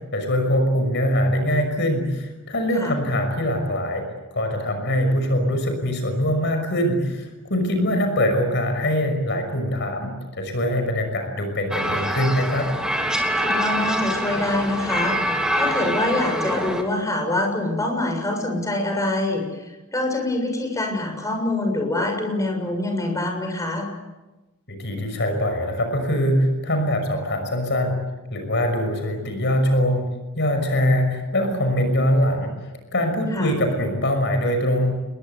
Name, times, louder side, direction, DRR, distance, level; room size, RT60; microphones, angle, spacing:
voice 1, 0.1-4.0 4.3-12.7 24.7-28.0 28.3-30.1 30.3-32.5 32.9-34.9, equal, 55° left, 6 dB, 6.0 m, -23 dB
sound 1, 11.7-16.8, equal, 5° right, 3.3 m, -25 dB
voice 2, 13.3-15.2 15.5-23.9 33.3-33.6, left 2 dB, 15° left, 3 dB, 6.9 m, -25 dB
29.0 x 22.5 x 8.2 m, 1.1 s
head